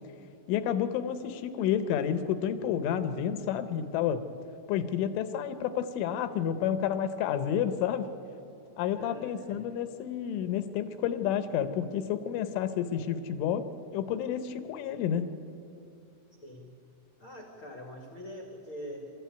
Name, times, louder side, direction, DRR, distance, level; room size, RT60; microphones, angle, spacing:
voice 1, 0.5-4.2 4.7-8.1 8.8-15.2, left 9 dB, 75° left, 11 dB, 3.3 m, -30 dB
voice 2, 8.9-9.6 16.4-16.7 17.2-19.1, equal, 55° left, 3 dB, 1.4 m, -44 dB
27.5 x 14.0 x 9.4 m, 2.6 s
omnidirectional pair, 5.9 m